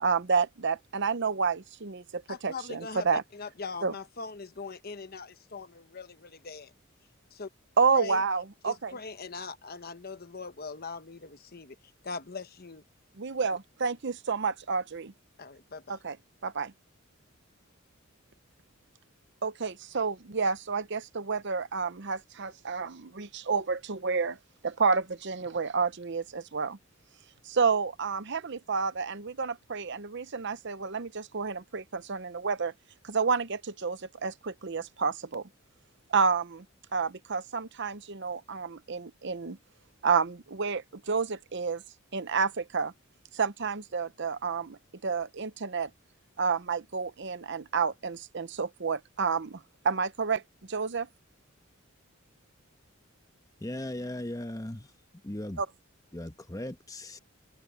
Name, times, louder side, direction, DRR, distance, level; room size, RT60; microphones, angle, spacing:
voice 1, 0.0-3.2 3.8-3.9 7.8-8.9 13.2-15.1 16.0-16.2 16.4-16.7 19.4-24.4 24.6-26.8 27.5-32.7 33.0-35.5 36.1-36.6 36.9-39.6 40.0-41.8 42.1-42.9 43.3-45.9 46.4-50.4 50.7-51.1 55.6-55.7, right 5 dB, 55° right, 0.8 m, -30 dB
voice 2, 2.3-6.7 7.3-7.5 7.9-8.2 8.6-11.8 12.0-12.8 15.4-16.0, left 4 dB, 45° left, 1.1 m, -41 dB
voice 3, 53.6-54.9 55.2-55.6 56.1-57.2, left 1 dB, 15° left, 1.1 m, -37 dB
head